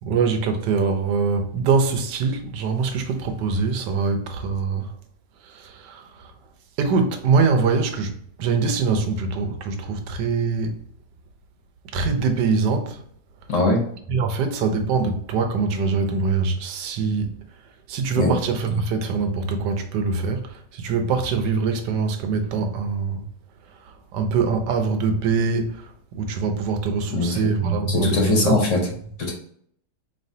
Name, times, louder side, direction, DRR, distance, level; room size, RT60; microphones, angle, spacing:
voice 1, 0.0-4.9 5.4-6.3 6.8-10.8 11.9-13.0 14.1-17.3 17.9-23.3 23.8-28.6, right 4 dB, 80° right, 1.3 m, -23 dB
voice 2, 13.5-13.8 18.2-18.3 27.1-27.5 27.9-28.8 29.2-29.3, left 2 dB, 50° left, 1.1 m, -21 dB
4.6 x 3.2 x 2.7 m
omnidirectional pair, 1.9 m